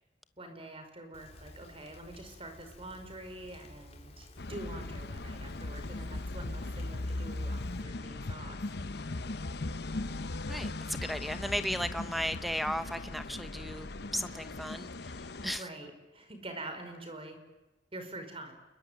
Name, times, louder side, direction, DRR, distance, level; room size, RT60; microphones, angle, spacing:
voice 1, 0.4-8.6 15.6-17.4 17.9-18.5, right 1 dB, 35° right, 7 dB, 5.1 m, -45 dB
Rain, 1.1-7.8, left 1 dB, 40° left, 4.0 m, -53 dB
sound 1, 4.4-15.6, left 2 dB, 70° left, 1.0 m, -38 dB
voice 2, 10.4-15.1 15.4-15.7, equal, ahead, 10 dB, 0.9 m, -35 dB
28.5 x 22.5 x 9.3 m, 1.1 s
head